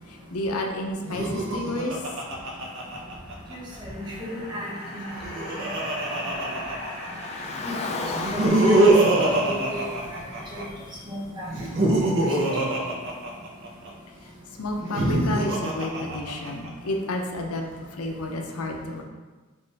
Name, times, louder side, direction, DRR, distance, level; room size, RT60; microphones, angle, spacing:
voice 1, 0.1-2.0 14.6-17.6 18.0-19.0, left 1 dB, 80° left, 2 dB, 0.6 m, -30 dB
Laughter, 1.0-3.5 4.9-7.2 8.1-10.6 11.5-13.9 14.7-16.7, right 2 dB, 60° right, 0.7 m, -24 dB
sound 1, 3.0-9.4, left 1 dB, 50° left, 0.9 m, -41 dB
voice 2, 3.5-4.7 7.6-8.0 8.3-8.9 9.2-10.2 10.5-10.6 11.1-11.5, left 1 dB, 20° right, -6 dB, 1.0 m, -34 dB
Car, 6.8-11.2, left 3 dB, 30° left, 0.3 m, -36 dB
5.3 x 2.5 x 3.3 m, 1.3 s
head